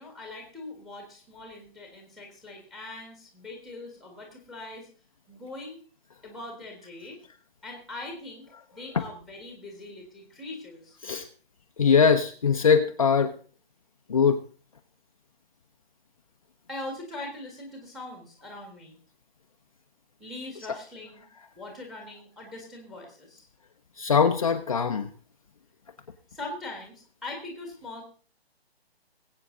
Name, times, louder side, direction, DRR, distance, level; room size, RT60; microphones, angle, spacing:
voice 1, 0.0-4.9 5.3-5.8 6.2-7.2 7.6-11.0 16.7-19.0 20.2-21.3 21.5-23.5 26.3-28.0, left 2 dB, ahead, 1 dB, 1.6 m, -41 dB
voice 2, 11.8-13.3 14.1-14.4 24.0-25.1, left 6 dB, 35° left, 4 dB, 0.8 m, -21 dB
20.5 x 8.6 x 3.8 m, 0.40 s
hypercardioid pair, 170°, 31 cm